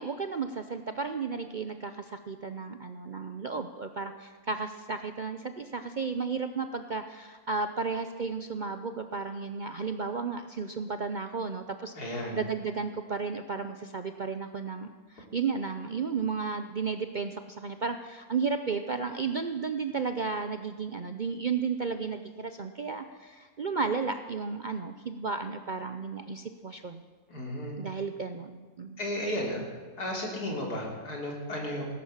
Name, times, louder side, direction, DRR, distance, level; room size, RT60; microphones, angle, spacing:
voice 1, 0.0-27.0 27.8-29.0, right 5 dB, 55° right, 8 dB, 0.5 m, -33 dB
voice 2, 12.0-12.4 27.3-27.7 29.0-29.6 30.0-31.8, left 1 dB, 90° left, -1 dB, 3.8 m, -33 dB
18.0 x 10.5 x 7.4 m, 1.5 s
omnidirectional pair, 1.6 m